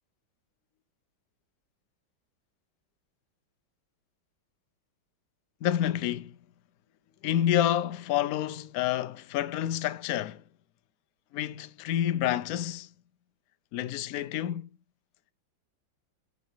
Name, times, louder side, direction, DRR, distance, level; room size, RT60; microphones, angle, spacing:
voice 1, 5.6-6.3 7.2-10.4 11.3-12.9 13.7-14.7, left 11 dB, 70° left, 0.9 m, -28 dB
11.5 x 4.6 x 3.5 m
omnidirectional pair, 2.1 m